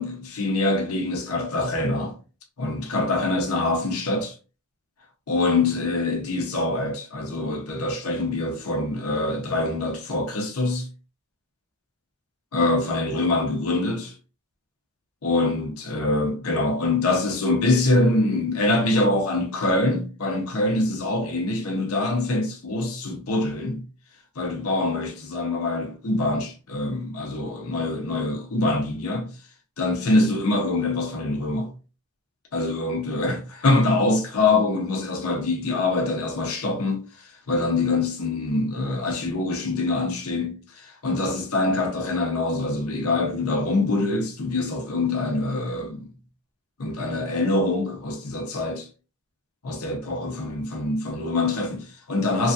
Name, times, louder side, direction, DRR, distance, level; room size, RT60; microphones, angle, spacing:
voice 1, 0.0-2.1 2.6-4.3 5.3-10.9 12.5-14.1 15.2-23.8 24.4-29.3 29.8-31.7 32.5-46.1 46.8-48.9 49.6-52.5, left 2 dB, 80° left, 0.7 m, -24 dB
3.1 x 2.4 x 2.6 m
head